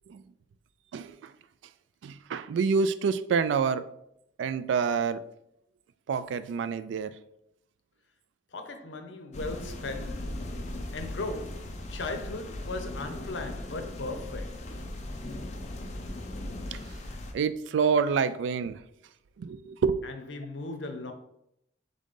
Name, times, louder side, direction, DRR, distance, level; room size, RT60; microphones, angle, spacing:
voice 1, 0.9-1.3 2.0-3.8 4.4-5.2 6.1-7.1 16.7-16.8 17.3-18.8 19.4-20.0, right 5 dB, 90° right, 0.3 m, -27 dB
voice 2, 8.5-10.6 10.9-14.8 20.0-21.1, left 3 dB, 85° left, 0.7 m, -38 dB
sound 1, 9.3-17.3, left 1 dB, 40° left, 0.5 m, -38 dB
3.8 x 3.7 x 3.7 m
head